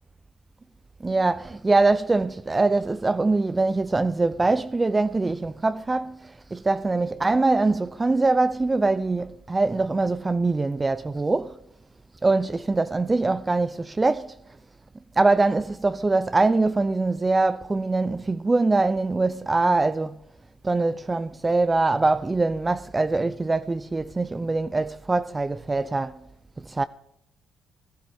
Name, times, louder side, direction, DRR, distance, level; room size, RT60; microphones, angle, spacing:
voice 1, 1.0-11.6 12.2-14.3 15.2-20.2 20.6-26.2 26.7-26.8, right 3 dB, 20° right, 0.4 m, -23 dB
16.0 x 12.0 x 3.5 m
cardioid pair, 90°, 0 cm